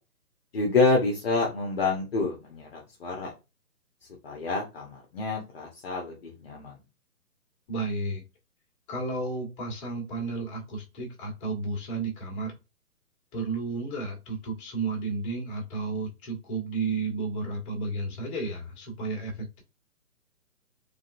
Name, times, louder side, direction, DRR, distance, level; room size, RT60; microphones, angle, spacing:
voice 1, 0.5-3.3 4.2-6.7, left 3 dB, 40° left, -1 dB, 1.0 m, -27 dB
voice 2, 7.7-8.2 8.9-12.5 13.3-19.6, right 3 dB, 20° left, -2 dB, 1.6 m, -32 dB
4.0 x 3.3 x 2.6 m, 0.27 s
figure-of-eight pair, 140°, 46 cm